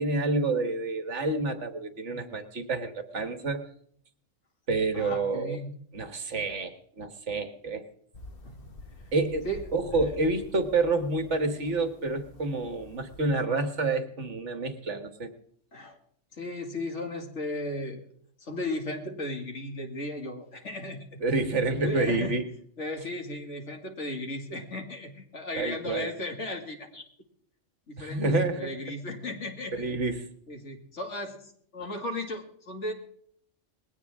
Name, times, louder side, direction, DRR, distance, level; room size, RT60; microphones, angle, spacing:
voice 1, 0.0-3.6 4.7-5.6 5.9-7.9 9.1-9.5 9.7-15.3 21.2-22.5 25.5-26.1 28.0-28.7 29.8-30.3, right 3 dB, 65° right, 8 dB, 1.8 m, -28 dB
voice 2, 4.9-5.8 8.4-8.7 9.4-9.7 10.0-10.1 15.7-16.0 16.3-18.1 18.4-21.2 21.8-22.4 22.8-27.0 27.9-29.9 30.5-32.9, left 1 dB, 65° left, 3 dB, 2.5 m, -36 dB
sound 1, 8.1-13.3, left 3 dB, 45° left, 1.6 m, -47 dB
20.5 x 16.5 x 3.6 m, 0.64 s
omnidirectional pair, 1.3 m